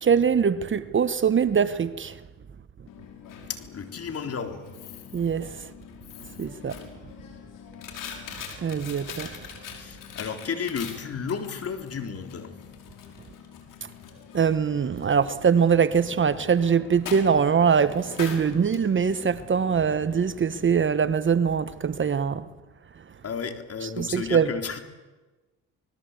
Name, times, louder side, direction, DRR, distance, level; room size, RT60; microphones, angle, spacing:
voice 1, 0.0-2.2 5.1-5.7 6.4-6.8 8.6-9.3 14.3-22.5 23.8-24.5, right 6 dB, 35° right, 1.1 m, -23 dB
Coin (dropping), 2.9-20.6, left 7 dB, 70° left, 5.4 m, -43 dB
voice 2, 3.5-4.6 9.6-12.6 23.2-24.8, left 6 dB, 45° left, 3.7 m, -33 dB
27.0 x 20.0 x 8.3 m
supercardioid pair, 75°, 34 cm